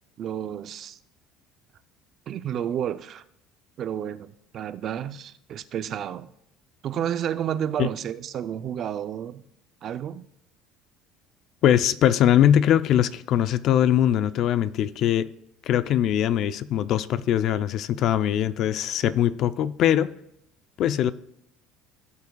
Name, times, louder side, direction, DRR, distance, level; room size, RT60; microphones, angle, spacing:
voice 1, 0.2-1.0 2.3-3.2 3.8-6.3 6.8-9.4 9.8-10.3, right 9 dB, 40° right, 0.4 m, -31 dB
voice 2, 11.6-15.3 15.6-20.1 20.8-21.1, left 10 dB, 50° left, 0.5 m, -21 dB
18.0 x 8.2 x 2.3 m
cardioid pair, 145°, 0 cm